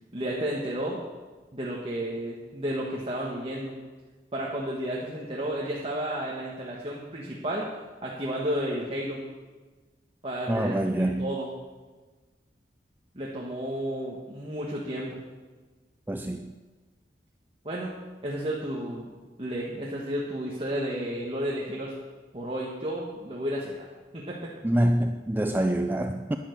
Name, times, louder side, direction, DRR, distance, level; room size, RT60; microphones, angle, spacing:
voice 1, 0.1-1.0 1.5-3.7 4.3-7.7 8.0-9.2 10.2-11.5 13.1-15.2 17.6-17.9 18.2-19.1 19.4-21.9 22.3-23.8 24.1-24.5, right 1 dB, 30° right, -4 dB, 1.6 m, -32 dB
voice 2, 10.5-11.4 16.1-16.6 24.6-26.4, right 1 dB, 10° right, 6 dB, 0.4 m, -26 dB
10.5 x 10.5 x 6.7 m, 1.3 s
head